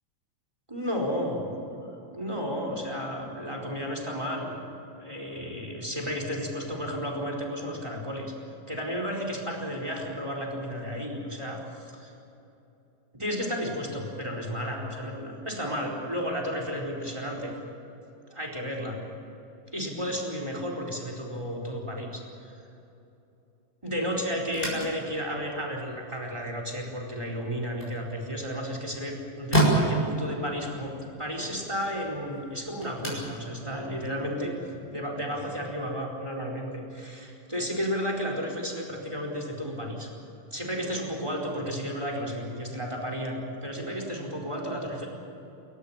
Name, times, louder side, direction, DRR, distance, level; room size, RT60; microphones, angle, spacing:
voice 1, 0.7-4.5 5.0-8.3 8.7-12.1 13.1-17.5 18.3-19.0 19.7-22.5 23.8-30.9 31.2-34.5 34.9-40.1 40.5-45.1, equal, 10° right, 1 dB, 4.2 m, -33 dB
sound 1, 24.4-34.9, right 1 dB, 15° left, 7.5 m, -33 dB
29.0 x 14.5 x 8.9 m, 2.9 s
omnidirectional pair, 3.9 m